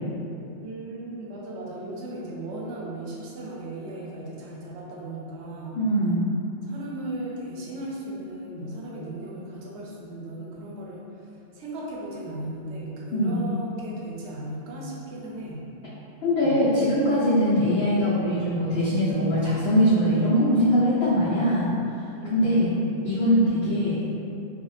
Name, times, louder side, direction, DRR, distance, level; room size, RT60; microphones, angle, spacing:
voice 1, 0.6-5.8 6.6-15.7 16.3-16.6 22.2-22.7, right 1 dB, 85° right, -4 dB, 0.9 m, -36 dB
voice 2, 5.7-6.2 13.1-13.5 16.2-21.7 22.3-22.7 23.0-24.0, equal, 80° left, -11 dB, 0.9 m, -22 dB
2.4 x 2.1 x 3.1 m, 2.7 s
omnidirectional pair, 1.1 m